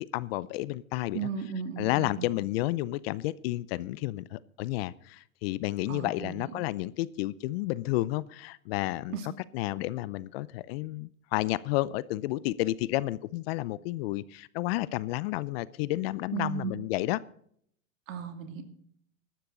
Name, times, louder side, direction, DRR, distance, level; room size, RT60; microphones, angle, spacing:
voice 1, 0.0-1.3 1.8-9.2 9.5-17.2, left 17 dB, 45° left, 20 dB, 0.6 m, -31 dB
voice 2, 1.1-2.3 5.9-6.6 9.1-9.3 16.3-16.7 18.1-18.6, right 7 dB, 70° right, 6 dB, 2.6 m, -35 dB
15.0 x 12.5 x 3.9 m, 0.65 s
hypercardioid pair, 115°, 41 cm